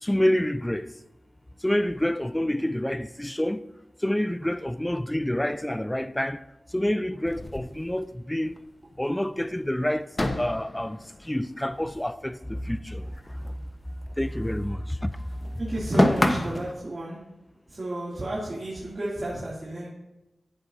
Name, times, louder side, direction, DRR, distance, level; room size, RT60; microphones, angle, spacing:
voice 1, 0.0-0.9 1.6-3.6 4.0-6.4 6.7-8.6 9.0-10.1 10.4-13.5 14.2-15.4, left 1 dB, 10° left, 0.5 m, -28 dB
sound 1, 7.3-8.6 8.9-9.0 9.3-9.4 10.1-12.6 12.9-14.7 15.0-16.7, left 1 dB, 30° left, 1.2 m, -29 dB
voice 2, 15.6-17.2 17.7-19.9, right 1 dB, 55° right, 2.9 m, -32 dB
15.0 x 7.8 x 2.8 m
cardioid pair, 40°, 0 cm